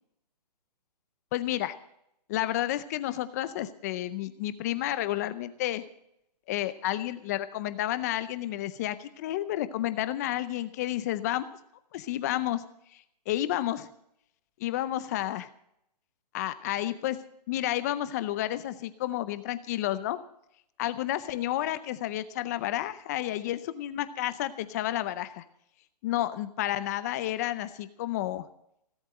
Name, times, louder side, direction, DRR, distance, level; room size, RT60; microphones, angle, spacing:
voice 1, 1.3-1.7 2.3-5.8 6.5-11.6 11.9-12.6 12.9-13.9 14.6-15.5 16.3-17.2 17.5-20.2 20.8-25.4 26.0-28.5, left 13 dB, 25° left, 13 dB, 0.5 m, -31 dB
17.0 x 8.1 x 7.6 m, 0.73 s
hypercardioid pair, 155°, 21 cm